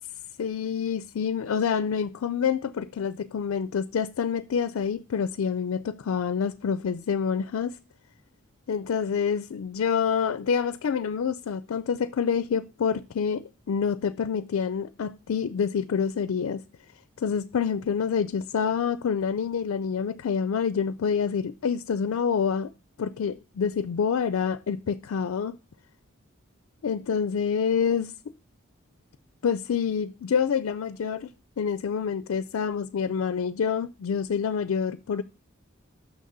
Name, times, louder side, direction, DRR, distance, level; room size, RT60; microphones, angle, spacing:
voice 1, 0.4-7.8 8.7-16.6 17.2-22.7 23.0-25.6 26.8-28.1 29.4-31.3 31.6-35.2, left 6 dB, 80° left, 0.4 m, -27 dB
6.5 x 6.1 x 6.6 m
head